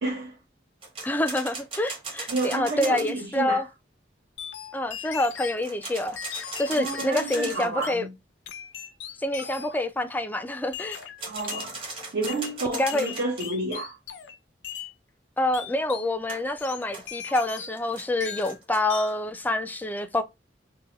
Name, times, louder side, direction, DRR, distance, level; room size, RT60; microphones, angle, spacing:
voice 1, 0.0-0.4 2.3-3.7 6.7-8.1 11.2-14.0, right 2 dB, 70° right, 0.7 m, -30 dB
sound 1, 0.8-3.1 5.6-7.8 10.9-13.5 16.3-19.1, right 3 dB, 30° right, 0.9 m, -38 dB
voice 2, 1.0-3.7 4.7-8.0 9.2-11.0 12.7-13.1 15.4-20.2, left 1 dB, 10° left, 0.3 m, -27 dB
sound 2, 4.4-5.6 6.2-8.0 8.5-9.9 10.7-11.8 12.3-14.4 14.6-14.9 15.5-16.1 16.6-17.9 18.2-18.6 18.9-19.2, left 8 dB, 85° left, 0.4 m, -39 dB
2.7 x 2.1 x 3.9 m
head